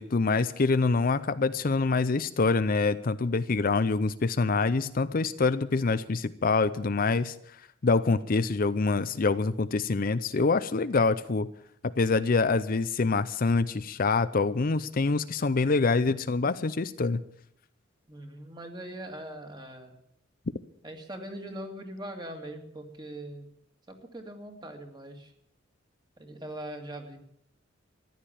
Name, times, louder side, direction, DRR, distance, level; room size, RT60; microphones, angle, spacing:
voice 1, 0.0-7.3 7.8-11.5 11.8-17.2, left 4 dB, 45° left, 13 dB, 0.5 m, -25 dB
voice 2, 18.1-20.0 20.8-23.5 23.9-25.3 26.2-27.2, right 1 dB, 20° right, 4 dB, 2.2 m, -41 dB
14.5 x 11.0 x 8.7 m, 0.72 s
head